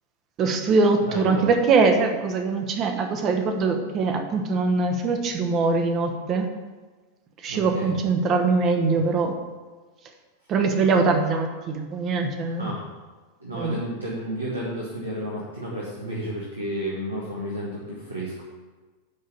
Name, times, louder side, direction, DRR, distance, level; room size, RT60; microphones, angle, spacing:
voice 1, 0.4-6.5 7.4-9.3 10.5-12.7 13.6-13.8, right 4 dB, 35° right, 5 dB, 1.1 m, -22 dB
voice 2, 1.0-1.4 7.5-7.9 12.6-12.8 13.4-18.4, equal, 80° right, -5 dB, 1.6 m, -32 dB
9.7 x 3.9 x 6.8 m, 1.3 s
figure-of-eight pair, 90°, 0 cm